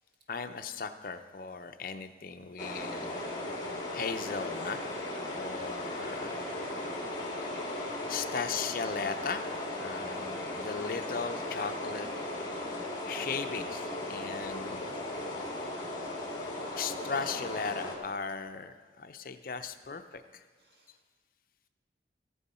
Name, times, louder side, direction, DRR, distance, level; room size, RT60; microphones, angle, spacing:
voice 1, 0.3-3.2 3.9-4.8 5.3-6.4 8.1-12.1 13.1-15.0 16.7-20.4, left 5 dB, 50° left, 9 dB, 0.5 m, -37 dB
sound 1, 2.6-18.0, left 1 dB, 25° left, 1.9 m, -37 dB
voice 2, 6.9-7.4 8.0-8.1 12.5-12.6 15.8-16.2 20.6-21.0, equal, 65° right, 0 dB, 1.8 m, -66 dB
14.5 x 9.1 x 4.3 m, 1.4 s
head